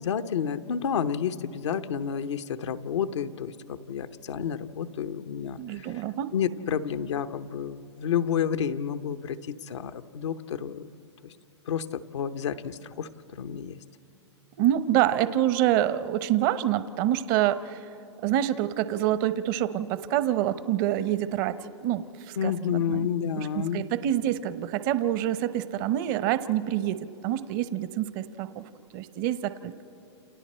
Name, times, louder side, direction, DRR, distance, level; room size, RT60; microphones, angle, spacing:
voice 1, 0.0-6.0 6.3-10.9 11.2-11.3 11.6-13.8 22.4-23.9, left 8 dB, 80° left, 7 dB, 0.9 m, -30 dB
voice 2, 5.6-6.3 14.6-17.9 18.2-21.6 21.8-23.1 23.4-29.7, right 12 dB, 45° right, 13 dB, 0.9 m, -27 dB
29.5 x 29.0 x 4.4 m, 2.9 s
hypercardioid pair, 125°, 15 cm